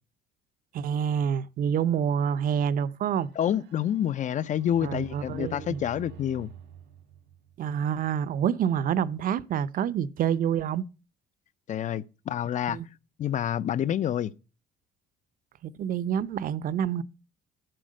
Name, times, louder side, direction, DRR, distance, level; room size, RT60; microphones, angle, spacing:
voice 1, 0.7-3.3 4.8-5.8 7.6-10.9 12.7-12.9 15.6-17.0, right 8 dB, 55° right, 0.7 m, -27 dB
sound 1, 3.1-7.9, right 8 dB, 85° right, 1.6 m, -48 dB
voice 2, 3.4-6.5 11.7-12.8 13.2-14.3, left 10 dB, 45° left, 0.5 m, -28 dB
9.2 x 7.7 x 6.3 m
cardioid pair, 110°, 17 cm